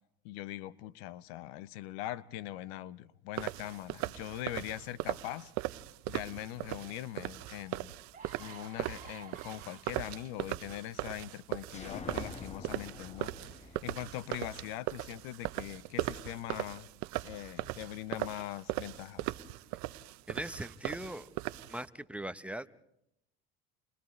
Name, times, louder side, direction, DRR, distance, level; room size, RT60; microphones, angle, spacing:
voice 1, 0.2-5.5 6.1-7.9 8.4-16.9 17.2-19.4, left 14 dB, 75° left, 18 dB, 0.9 m, -42 dB
sound 1, 3.4-21.8, right 17 dB, 65° right, 0.9 m, -39 dB
sound 2, 7.4-7.5 7.9-10.3 11.0-11.2, right 6 dB, 25° right, 4.1 m, -51 dB
sound 3, 11.7-15.4, left 4 dB, 20° left, 1.4 m, -48 dB
voice 2, 20.3-21.3 21.7-22.7, right 1 dB, 5° right, 12 dB, 0.9 m, -40 dB
30.0 x 29.5 x 3.2 m, 0.79 s
supercardioid pair, 95°, 31 cm